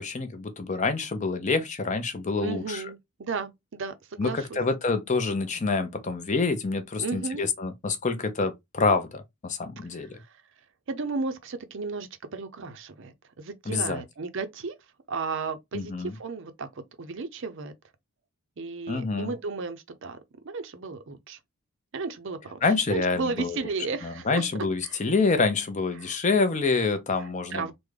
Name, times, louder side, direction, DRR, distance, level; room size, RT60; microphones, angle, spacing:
voice 1, 0.0-2.8 4.2-10.2 13.7-14.0 15.7-16.2 18.9-19.3 22.6-23.6 24.0-27.7, left 4 dB, 30° left, 0.5 m, -27 dB
voice 2, 2.4-4.6 7.0-7.5 10.1-10.3 10.9-14.7 15.1-17.7 18.6-20.2 20.4-21.4 21.9-22.6 22.9-24.4 24.8-25.0 26.0-26.1 27.2-27.7, right 4 dB, 55° right, 0.5 m, -34 dB
3.6 x 2.1 x 3.1 m
head